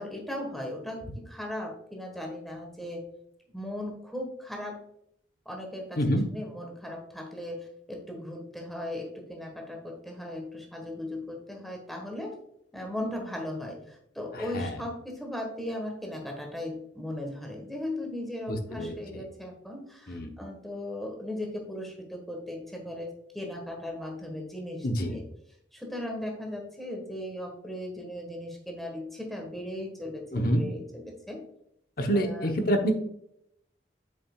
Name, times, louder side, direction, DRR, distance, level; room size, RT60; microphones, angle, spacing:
voice 1, 0.0-3.1 3.5-4.8 5.4-6.0 6.3-12.3 12.7-25.2 25.7-31.4 32.1-32.5, left 1 dB, ahead, 1 dB, 1.4 m, -37 dB
voice 2, 14.3-14.8 18.5-19.2 20.1-20.3 24.8-25.2 30.3-30.6 32.0-32.9, equal, 55° left, 4 dB, 1.0 m, -27 dB
8.0 x 5.8 x 2.4 m, 0.75 s
head